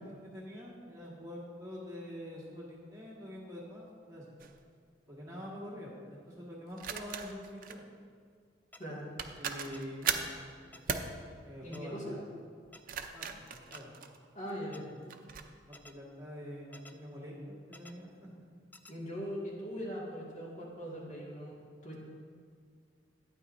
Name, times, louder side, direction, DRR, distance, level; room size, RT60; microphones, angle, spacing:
voice 1, 0.0-4.3 5.1-7.8 9.4-10.3 10.9-11.1 11.4-12.3 13.1-13.9 14.7-15.3 15.7-18.3, equal, 20° right, -5 dB, 1.7 m, -46 dB
sound 1, 4.4-4.6 6.8-7.8 8.8-8.9 9.2-10.4 10.9-11.1 12.6-14.5 15.1-15.5, right 7 dB, 50° right, 0.5 m, -37 dB
sound 2, 8.7-8.8 9.7-9.8 10.7-10.8 11.7-11.8 12.7-12.8 13.7-13.8 14.7-14.8 15.7-15.9 16.7-16.9 17.7-17.9 18.7-18.9, left 2 dB, 10° left, 0.3 m, -52 dB
voice 2, 11.6-12.2 14.3-14.9 18.9-21.6 21.8-22.0, equal, 40° left, -5 dB, 2.0 m, -40 dB
12.0 x 9.4 x 2.6 m, 2.1 s
head